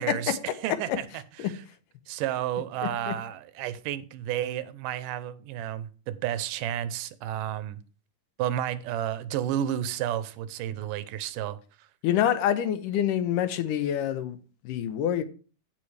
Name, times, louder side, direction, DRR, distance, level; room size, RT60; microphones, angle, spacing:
voice 1, 0.0-1.6 2.1-7.8 8.4-11.9, right 11 dB, 90° right, 2.3 m, -32 dB
voice 2, 12.0-14.4 14.7-15.2, left 10 dB, 85° left, 2.5 m, -26 dB
15.5 x 5.6 x 3.3 m
omnidirectional pair, 3.7 m